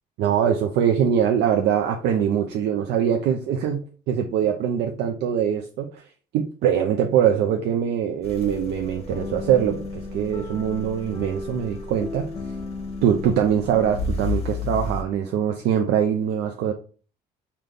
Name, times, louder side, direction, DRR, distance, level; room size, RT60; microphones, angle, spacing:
voice 1, 0.2-6.0 6.3-12.3 13.0-16.7, right 9 dB, 75° right, 0.4 m, -23 dB
sound 1, 8.2-15.0, left 3 dB, 35° left, 0.8 m, -32 dB
3.8 x 2.2 x 3.3 m
cardioid pair, 110°, 17 cm